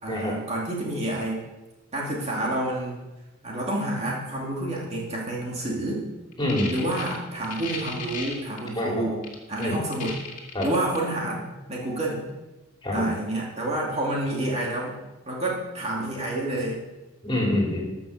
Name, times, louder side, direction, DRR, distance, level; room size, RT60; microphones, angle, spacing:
voice 1, 0.0-1.4 1.9-3.0 3.4-6.0 6.7-9.2 9.5-10.2 10.6-12.2 12.9-15.0 15.3-16.8, right 1 dB, 30° right, -3 dB, 2.4 m, -29 dB
sound 1, 6.3-8.6 9.2-11.0, left 5 dB, 40° left, 2.1 m, -36 dB
voice 2, 6.4-6.7 8.8-9.0 9.6-9.8 10.5-10.7 12.8-13.1 17.2-17.8, left 1 dB, 20° left, -3 dB, 3.1 m, -25 dB
14.5 x 6.0 x 6.6 m, 1.1 s
head